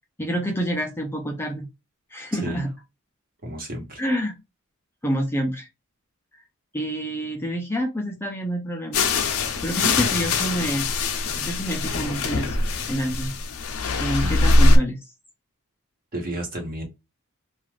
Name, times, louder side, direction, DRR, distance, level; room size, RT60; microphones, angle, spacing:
voice 1, 0.2-1.7 2.1-2.7 4.0-4.3 5.0-5.7 6.7-9.0 9.6-10.9 11.4-12.6 12.9-13.3 14.0-15.0, equal, 10° left, 0.4 m, -27 dB
voice 2, 3.4-4.0 14.2-14.6 16.1-16.8, right 1 dB, 40° right, 1.1 m, -32 dB
sound 1, 8.9-14.8, left 2 dB, 75° left, 0.5 m, -22 dB
2.4 x 2.4 x 3.2 m
head